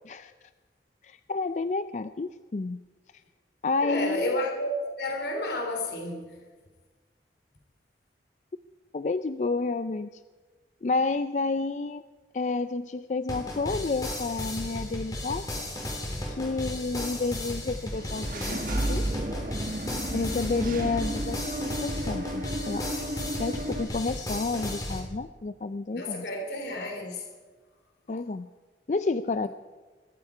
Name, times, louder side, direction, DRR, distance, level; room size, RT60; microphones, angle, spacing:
voice 1, 1.0-2.8 3.6-4.4 8.9-10.1 10.8-12.0 12.3-15.4 16.3-19.2 20.1-23.1 23.4-26.3 28.1-28.5 28.9-29.5, left 3 dB, 40° left, 11 dB, 0.4 m, -30 dB
voice 2, 3.8-4.7 5.0-6.4 25.9-27.2, left 1 dB, 75° left, 2 dB, 3.0 m, -31 dB
sound 1, 13.3-25.0, left 1 dB, 20° left, 3.4 m, -35 dB
Engine / Mechanisms, 17.9-23.8, right 1 dB, 50° right, 1.4 m, -33 dB
21.5 x 13.5 x 4.9 m, 1.3 s
head